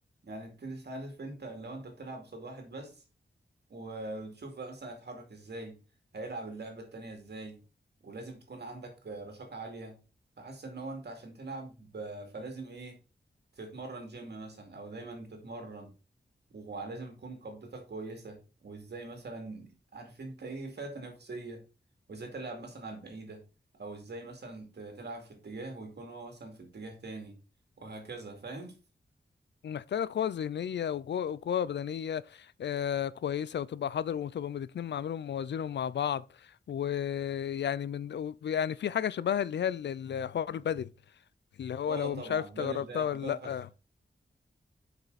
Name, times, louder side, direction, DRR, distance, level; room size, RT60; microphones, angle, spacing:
voice 1, 0.2-3.0 3.7-5.8 6.1-7.6 8.0-10.0 10.4-13.0 13.6-15.9 16.5-21.6 22.1-23.4 23.8-27.4 27.8-28.8 41.9-43.5, right 2 dB, 70° right, 2.4 m, -42 dB
voice 2, 29.6-40.9 41.6-43.7, left 9 dB, 80° left, 0.4 m, -33 dB
7.4 x 5.6 x 4.0 m
wide cardioid pair, 110°, 18 cm